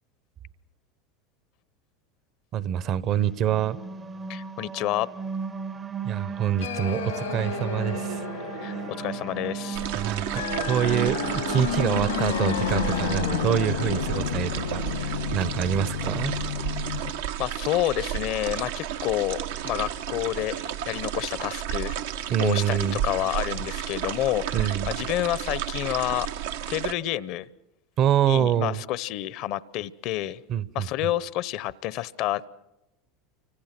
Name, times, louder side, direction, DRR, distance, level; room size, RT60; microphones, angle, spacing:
voice 1, 2.5-3.8 6.0-8.3 9.9-16.3 22.3-23.0 24.5-25.0 28.0-28.8 30.5-30.9, right 9 dB, 50° right, 17 dB, 1.1 m, -26 dB
sound 1, 3.4-13.9, right 7 dB, 25° right, 0.8 m, -36 dB
voice 2, 4.3-5.1 8.6-9.9 17.4-21.9 22.4-26.3 26.7-27.5 28.2-30.4 30.7-32.5, left 14 dB, 55° left, 19 dB, 0.9 m, -29 dB
sound 2, 6.6-17.1, left 7 dB, 90° left, 2.0 m, -31 dB
sound 3, 9.7-26.9, right 10 dB, 75° right, 1.1 m, -32 dB
29.0 x 25.0 x 6.1 m, 0.96 s
hypercardioid pair, 90°, 0 cm